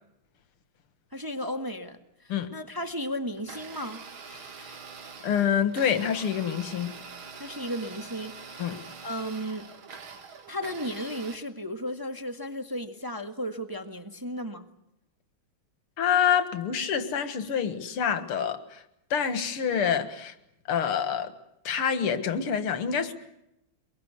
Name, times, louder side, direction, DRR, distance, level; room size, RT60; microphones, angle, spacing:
voice 1, 1.1-2.0 2.5-4.0 7.4-8.7 9.0-9.7 10.5-14.7, equal, 10° right, 1.3 m, -34 dB
Domestic sounds home sounds, 3.3-11.3, right 5 dB, 70° right, 2.9 m, -44 dB
voice 2, 4.4-4.7 5.2-6.9 8.6-8.8 16.0-18.8 19.1-20.3 20.7-21.3 21.6-23.1, left 8 dB, 90° left, 2.5 m, -27 dB
23.0 x 23.0 x 8.3 m
omnidirectional pair, 2.4 m